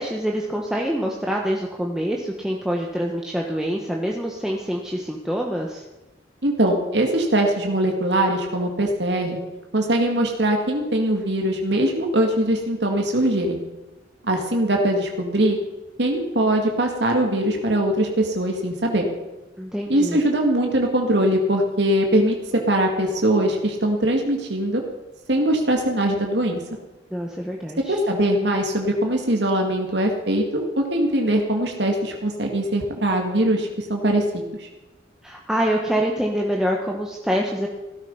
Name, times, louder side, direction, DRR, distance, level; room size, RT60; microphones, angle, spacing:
voice 1, 0.0-5.8 19.6-20.2 27.1-28.0 35.2-37.7, equal, 5° right, -1 dB, 1.2 m, -25 dB
voice 2, 6.4-9.4 9.7-13.6 14.2-15.6 16.0-19.0 19.9-22.3 22.7-24.8 25.3-26.6 27.9-34.7, right 1 dB, 70° right, 2 dB, 2.2 m, -21 dB
16.5 x 13.0 x 5.5 m, 1.1 s
head